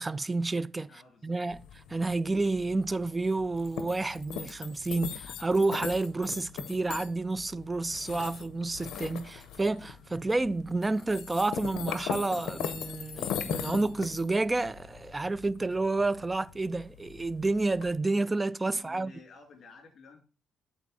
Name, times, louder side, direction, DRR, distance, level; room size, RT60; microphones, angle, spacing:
voice 1, 0.0-0.9 1.2-1.6 1.9-19.1, right 2 dB, 20° right, 0.3 m, -30 dB
voice 2, 0.9-1.4 18.7-20.2, left 4 dB, 55° left, 2.4 m, -53 dB
sound 1, 1.5-17.9, left 9 dB, 85° left, 0.6 m, -40 dB
8.3 x 4.0 x 4.0 m
cardioid pair, 90°, 0 cm